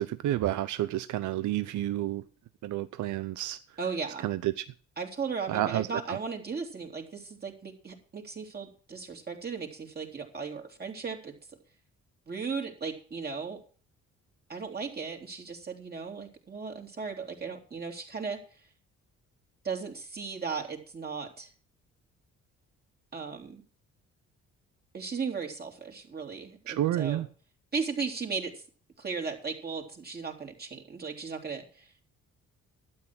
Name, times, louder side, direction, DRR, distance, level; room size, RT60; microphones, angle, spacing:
voice 1, 0.0-2.2 2.6-3.6 4.2-4.6 5.5-6.2 26.7-27.3, right 13 dB, 75° right, 13 dB, 0.7 m, -30 dB
voice 2, 3.8-4.3 5.0-11.4 12.3-13.6 14.5-18.4 19.6-21.5 23.1-23.6 24.9-27.3 27.7-28.6 29.0-31.9, right 5 dB, 30° right, 3 dB, 3.5 m, -36 dB
12.0 x 9.1 x 6.1 m, 0.40 s
cardioid pair, 90°, 30 cm